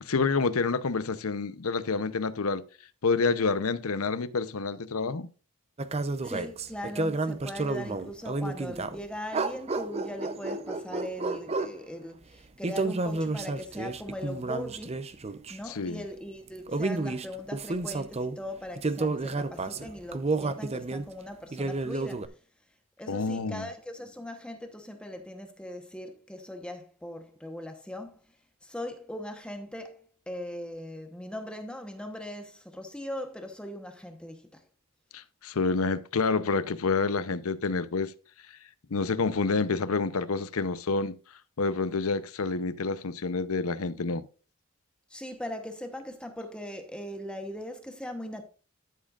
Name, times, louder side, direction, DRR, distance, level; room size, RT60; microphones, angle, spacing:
voice 1, 0.0-2.6 3.0-5.3 15.7-16.0 23.1-23.6 35.1-38.1 38.9-41.2 41.6-44.3, left 4 dB, 75° left, 0.7 m, -28 dB
sound 1, 5.8-9.0 9.3-11.8 12.6-15.6 16.5-18.4 18.8-21.1 21.5-22.3, right 3 dB, 30° right, 0.6 m, -31 dB
voice 2, 6.2-15.0 15.5-22.4 23.0-28.2 28.6-34.6 45.1-48.4, left 1 dB, 5° left, 0.9 m, -40 dB
13.0 x 7.4 x 2.4 m
head